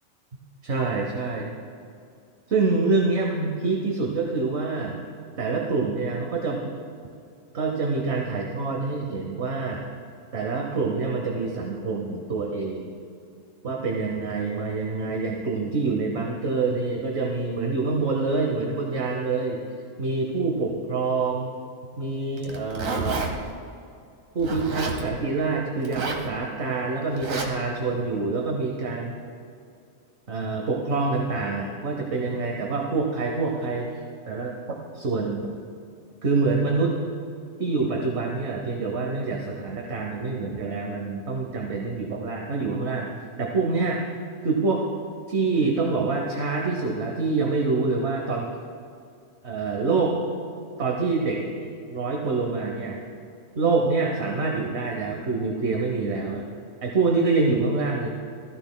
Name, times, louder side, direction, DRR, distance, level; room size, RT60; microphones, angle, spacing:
voice 1, 0.6-1.4 2.5-5.0 5.4-6.6 7.5-9.8 10.3-12.9 13.6-19.6 20.0-21.5 22.0-23.3 24.3-29.2 30.3-33.9 34.3-35.5 36.2-37.0 37.6-43.1 43.4-44.0 44.4-44.8 45.3-48.5 49.4-50.1 50.8-53.0 53.6-56.5 56.8-58.1, right 3 dB, 55° right, 0 dB, 1.2 m, -26 dB
Zipper (clothing), 22.4-23.3 24.4-25.0 25.8-26.3 27.2-27.5, right 4 dB, 75° right, 1.5 m, -30 dB
15.0 x 14.0 x 2.2 m, 2.4 s
omnidirectional pair, 1.4 m